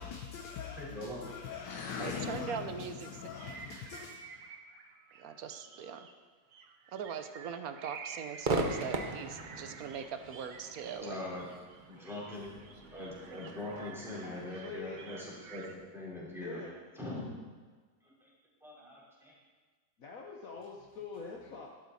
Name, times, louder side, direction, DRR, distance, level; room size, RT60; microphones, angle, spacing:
voice 1, 0.0-4.1, left 6 dB, 80° left, 2 dB, 1.5 m, -41 dB
voice 2, 0.8-1.3 10.9-11.5 11.9-12.6 12.9-16.6 17.0-17.2 18.0-18.3 18.6-19.3, left 1 dB, ahead, -7 dB, 4.1 m, -42 dB
voice 3, 2.0-3.1 5.2-6.1 6.9-11.2, right 7 dB, 65° right, 9 dB, 1.1 m, -41 dB
sound 1, 3.4-6.1 6.5-15.7, right 5 dB, 85° right, 1.6 m, -51 dB
Crowd / Fireworks, 8.4-15.8, right 3 dB, 35° right, 0.8 m, -40 dB
voice 4, 14.2-15.0 16.4-16.7 20.0-21.7, left 4 dB, 55° left, -1 dB, 1.3 m, -45 dB
13.0 x 12.0 x 4.1 m, 1.4 s
omnidirectional pair, 1.9 m